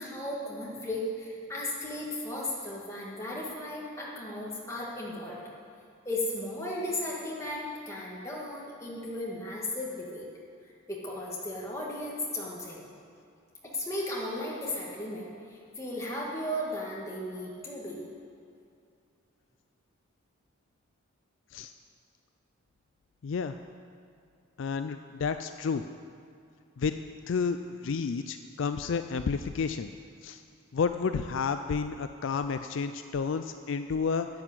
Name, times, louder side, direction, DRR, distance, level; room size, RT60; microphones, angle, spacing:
voice 1, 0.0-5.4 6.1-10.3 10.9-12.9 13.6-18.0, left 1 dB, 15° left, -4 dB, 2.1 m, -35 dB
voice 2, 23.2-23.5 24.6-25.8 26.8-26.9 27.3-29.9 30.2-30.4 30.7-34.3, left 5 dB, 60° left, 9 dB, 0.4 m, -31 dB
10.5 x 8.8 x 7.4 m, 2.5 s
head